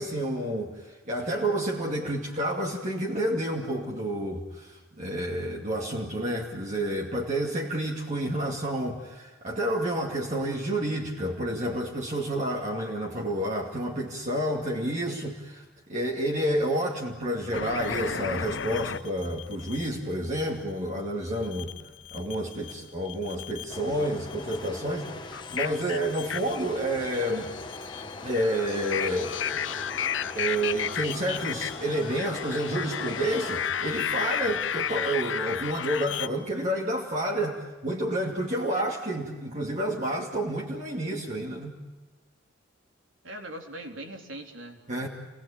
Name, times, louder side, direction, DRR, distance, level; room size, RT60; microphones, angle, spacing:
voice 1, 0.0-15.6 15.9-21.7 22.1-27.5 28.2-29.8 30.3-41.8 44.9-45.1, right 1 dB, 40° right, -2 dB, 2.6 m, -30 dB
sound 1, 17.5-19.9 21.4-22.7 23.0-23.9 24.3-36.3, left 8 dB, 70° left, 0.7 m, -33 dB
sound 2, 23.7-35.1, left 2 dB, 25° left, 1.6 m, -41 dB
voice 2, 43.2-45.1, right 1 dB, 80° right, 3 dB, 3.9 m, -41 dB
29.5 x 19.5 x 8.7 m, 1.3 s
head